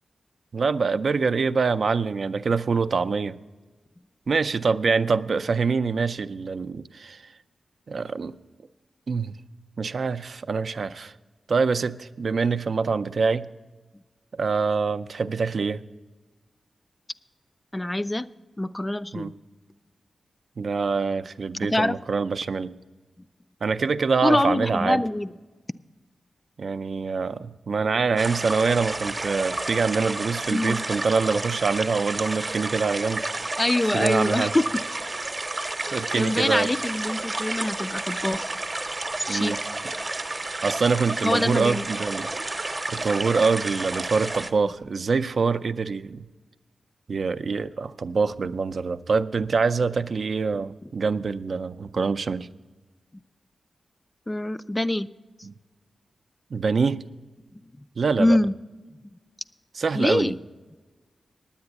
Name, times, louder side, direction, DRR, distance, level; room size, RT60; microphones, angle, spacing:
voice 1, 0.5-3.4 4.3-7.2 7.9-8.3 9.1-9.4 9.8-11.1 11.5-13.5 14.4-15.8 19.1-19.3 20.6-22.7 23.6-25.0 26.6-33.6 33.9-34.5 35.9-36.7 39.3-39.6 40.6-42.3 42.9-46.3 47.1-52.5 55.4-55.5 56.5-57.0 58.0-58.4 59.8-60.3, right 4 dB, 60° right, 11 dB, 0.4 m, -25 dB
voice 2, 17.7-18.3 18.6-19.3 21.6-22.0 24.2-25.3 30.5-30.8 33.6-34.7 35.9-38.5 39.3-39.6 41.2-41.8 54.3-55.1 58.2-58.6 59.9-60.4, left 1 dB, 20° left, 14 dB, 0.3 m, -24 dB
sound 1, 28.2-44.5, right 2 dB, 30° right, 0.8 m, -31 dB
9.7 x 8.7 x 8.1 m, 1.3 s
wide cardioid pair, 85°, 0 cm